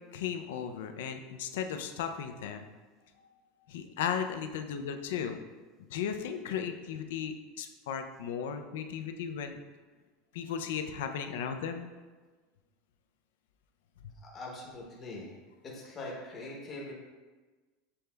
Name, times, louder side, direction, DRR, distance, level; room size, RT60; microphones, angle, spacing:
voice 1, 0.1-2.7 3.7-5.4 5.9-9.6 10.3-11.9 14.0-14.1, left 8 dB, 90° left, 6 dB, 0.4 m, -36 dB
voice 2, 14.3-15.3 15.7-16.9, left 2 dB, 20° left, -3 dB, 0.8 m, -42 dB
6.8 x 3.3 x 2.2 m, 1.3 s
supercardioid pair, 160°, 0 cm